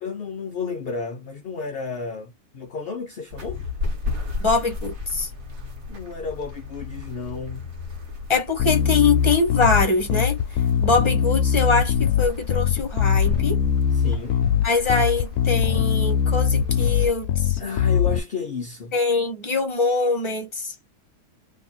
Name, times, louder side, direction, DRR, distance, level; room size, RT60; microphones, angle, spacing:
voice 1, 0.0-3.6 5.9-7.7 13.9-14.4 17.6-18.9, left 5 dB, 55° left, 0.7 m, -32 dB
sound 1, 3.3-17.1, left 3 dB, 60° right, 1.6 m, -34 dB
voice 2, 4.4-5.3 8.3-10.4 10.8-13.6 14.6-17.6 18.9-20.7, left 4 dB, 20° left, 1.0 m, -23 dB
Bass guitar, 8.6-18.2, left 8 dB, 70° left, 1.0 m, -21 dB
2.9 x 2.9 x 4.1 m
omnidirectional pair, 1.7 m